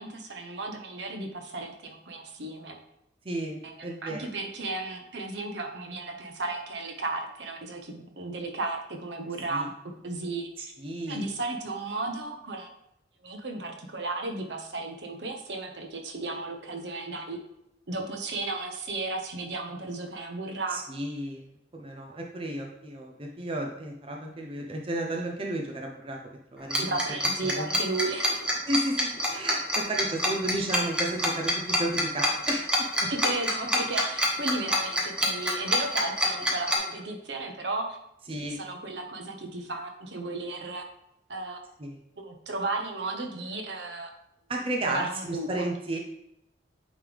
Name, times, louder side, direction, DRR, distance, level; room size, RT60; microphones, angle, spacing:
voice 1, 0.0-2.8 3.6-9.7 10.0-10.7 11.1-12.7 13.2-17.4 17.9-20.8 26.8-28.5 33.1-38.0 38.6-40.8 41.3-41.6 42.2-44.1 44.8-45.5, right 2 dB, 65° right, 4 dB, 0.9 m, -34 dB
voice 2, 3.2-4.3 9.5-9.7 10.6-11.3 20.7-21.4 21.7-26.2 26.5-27.0 27.4-27.7 28.7-32.7 33.0-33.1 38.3-38.6 41.8-42.0 44.5-46.0, right 1 dB, 30° right, 0 dB, 0.6 m, -33 dB
Tick-tock, 26.7-36.8, equal, 5° right, 0.9 m, -26 dB
8.8 x 3.3 x 3.5 m, 0.78 s
head